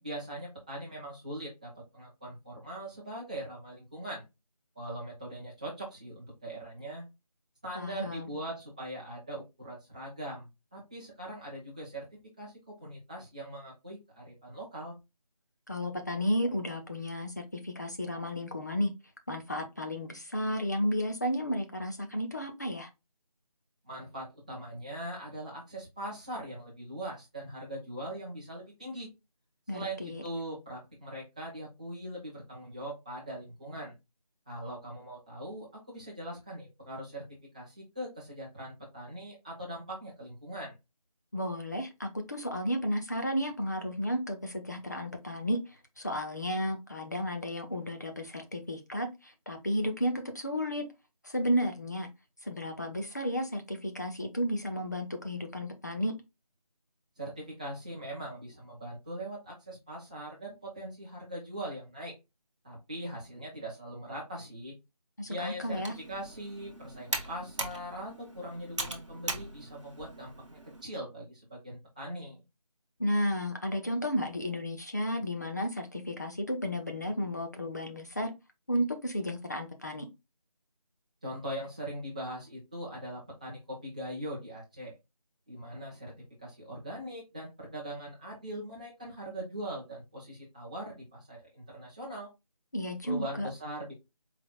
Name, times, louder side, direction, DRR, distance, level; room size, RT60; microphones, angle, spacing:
voice 1, 0.0-4.2 4.7-7.1 7.6-12.1 12.4-15.0 23.9-29.1 29.7-33.9 34.5-37.2 37.5-40.7 57.2-62.2 62.6-64.7 65.3-72.4 81.2-84.9 85.5-86.1 86.4-92.3 93.1-93.9, right 1 dB, 10° right, -5 dB, 1.0 m, -41 dB
voice 2, 7.7-8.3 15.7-18.9 19.3-22.9 29.7-30.2 41.3-45.6 46.0-50.8 51.2-52.1 52.4-56.1 65.2-65.9 73.0-78.3 78.7-80.1 92.7-93.5, equal, 30° left, 4 dB, 0.7 m, -33 dB
Computer keyboard, 65.7-70.8, right 2 dB, 50° right, 1.1 m, -40 dB
4.6 x 3.7 x 2.2 m, 0.23 s
figure-of-eight pair, 170°, 20 cm